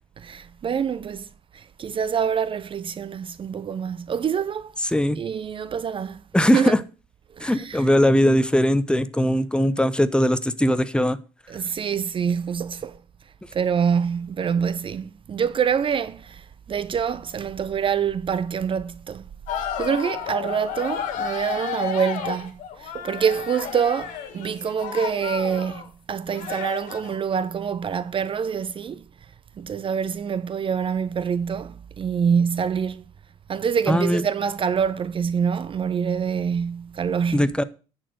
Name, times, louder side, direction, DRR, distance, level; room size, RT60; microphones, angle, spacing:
voice 1, 0.2-1.3 1.5-4.7 5.2-6.7 7.4-7.9 11.5-13.0 13.5-19.2 19.6-25.8 26.1-29.0 29.6-33.0 33.5-37.5, right 7 dB, 40° right, 0.6 m, -26 dB
voice 2, 6.3-6.8 7.4-11.2 33.9-34.3 37.3-37.6, equal, 5° left, 0.8 m, -20 dB
sound 1, 19.5-25.9 26.3-27.2, left 9 dB, 70° left, 1.8 m, -32 dB
10.0 x 4.5 x 7.5 m
hypercardioid pair, 65°, 14 cm